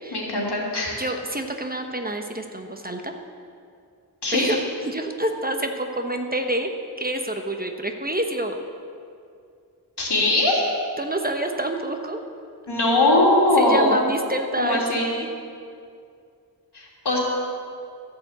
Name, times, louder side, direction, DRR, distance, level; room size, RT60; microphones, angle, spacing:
voice 1, 0.1-1.0 4.2-4.6 10.0-10.6 12.7-14.0 14.6-15.1 16.7-17.2, left 2 dB, 80° left, -3 dB, 3.0 m, -20 dB
voice 2, 1.0-3.1 4.3-6.7 7.0-8.6 11.0-12.2 13.6-15.3, right 1 dB, 20° right, 4 dB, 1.0 m, -27 dB
14.0 x 7.0 x 8.0 m, 2.4 s
wide cardioid pair, 65°, 40 cm